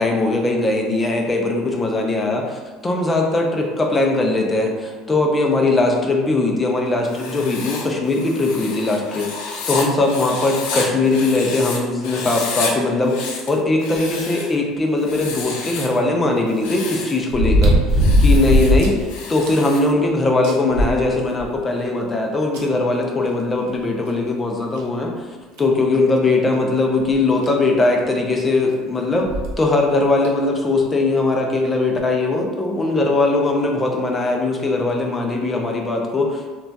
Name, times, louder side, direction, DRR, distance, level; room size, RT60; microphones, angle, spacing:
voice 1, 0.0-25.2 25.6-29.3 29.6-36.6, left 2 dB, 15° left, 1 dB, 0.3 m, -20 dB
Writing, 7.0-11.8 12.0-12.7 13.0-14.6 15.0-16.0 16.5-17.2 17.9-19.9, left 4 dB, 90° left, 0.5 m, -30 dB
sound 1, 15.4-15.5 17.3-19.0 19.4-19.5 20.0-20.1 20.4-21.6 22.5-22.6 24.1-24.2 24.8-24.9 25.6-25.8 27.1-27.2 27.4-27.5 29.2-29.5 30.2-30.3, equal, 85° right, 0.6 m, -17 dB
2.3 x 2.2 x 3.9 m, 1.4 s
cardioid pair, 175°, 0 cm